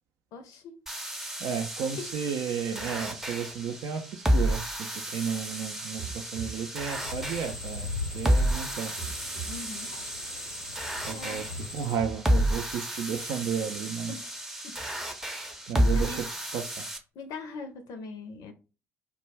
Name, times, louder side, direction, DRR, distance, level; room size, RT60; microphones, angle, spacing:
voice 1, 0.3-0.8 2.0-2.1 9.5-9.9 11.1-11.4 14.1-14.4 14.6-14.7 15.9-16.2 17.1-18.5, left 4 dB, 55° left, 0.5 m, -41 dB
sound 1, 0.9-17.0, equal, 5° right, 0.6 m, -31 dB
voice 2, 1.4-7.9 8.1-8.9 11.0-11.4 11.7-14.1 15.7-16.2 16.5-16.8, right 7 dB, 55° right, 0.4 m, -33 dB
sound 2, 5.6-6.7 6.9-7.5 8.0-8.1 8.6-9.6 9.9-10.5 11.0-11.1 11.6-12.6 12.9-13.5 13.9-14.0, right 7 dB, 80° right, 0.7 m, -42 dB
sound 3, 6.9-12.0, left 2 dB, 90° left, 0.8 m, -39 dB
2.2 x 2.1 x 3.3 m
figure-of-eight pair, 50°, 7 cm